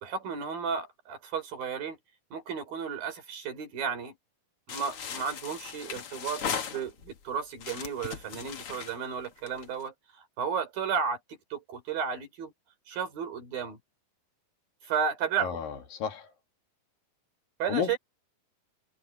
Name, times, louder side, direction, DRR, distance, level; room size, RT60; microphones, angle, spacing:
voice 1, 0.0-2.0 2.3-4.2 4.7-6.4 6.7-9.9 10.4-11.2 11.5-12.5 12.9-13.8 14.9-15.6 17.6-18.0, right 6 dB, 80° right, 6.0 m, -33 dB
sound 1, 4.7-7.2 7.6-9.8, left 7 dB, 50° left, 2.0 m, -38 dB
voice 2, 15.4-16.3 17.7-18.0, left 8 dB, 75° left, 4.0 m, -32 dB
omnidirectional pair, 4.1 m